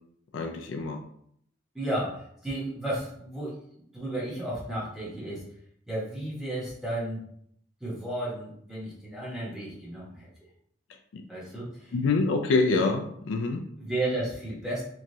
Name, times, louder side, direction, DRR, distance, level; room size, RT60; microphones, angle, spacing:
voice 1, 0.3-1.0 11.1-11.2 11.9-13.6, left 3 dB, 75° left, 5 dB, 0.3 m, -26 dB
voice 2, 1.7-3.6 3.9-5.5 5.9-7.2 7.8-10.3 11.3-11.9 13.8-14.8, right 1 dB, ahead, -7 dB, 0.9 m, -33 dB
3.0 x 2.3 x 2.6 m, 0.68 s
head